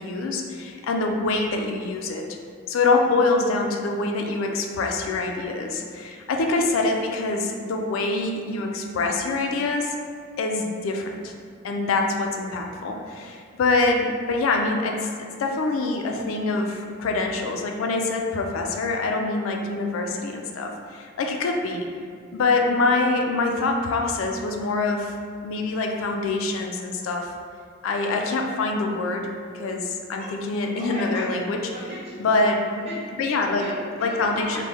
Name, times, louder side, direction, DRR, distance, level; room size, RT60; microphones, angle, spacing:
voice 1, 0.0-2.3 2.7-10.0 10.4-11.3 11.6-21.9 22.3-25.1 25.4-27.3 27.8-29.3 29.5-31.6 32.2-32.6 33.2-33.6 34.0-34.6, left 3 dB, 80° left, 2 dB, 0.3 m, -25 dB
voice 2, 30.8-31.2 31.7-32.2 32.7-33.3 33.6-34.6, right 1 dB, 35° right, -9 dB, 1.1 m, -36 dB
3.0 x 2.1 x 3.4 m, 2.2 s
head